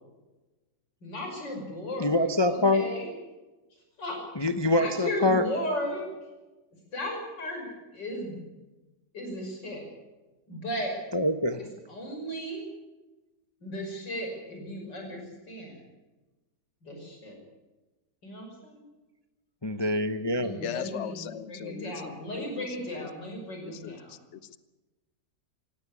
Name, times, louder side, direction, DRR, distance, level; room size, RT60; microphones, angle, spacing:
voice 1, 1.0-3.1 3.7-4.2 4.7-6.1 6.9-8.4 9.1-9.9 10.5-10.9 11.9-12.7 13.6-15.8 16.8-17.4 18.2-18.8 20.3-24.2, equal, 85° left, 2 dB, 6.4 m, -35 dB
voice 2, 2.0-2.8 4.4-5.4 11.1-11.6 19.6-20.6, left 1 dB, 25° left, 9 dB, 0.6 m, -25 dB
voice 3, 20.6-22.7 23.0-23.1 23.6-24.0 24.3-24.6, left 9 dB, 50° left, 14 dB, 1.1 m, -38 dB
17.0 x 17.0 x 9.7 m, 1.1 s
omnidirectional pair, 1.9 m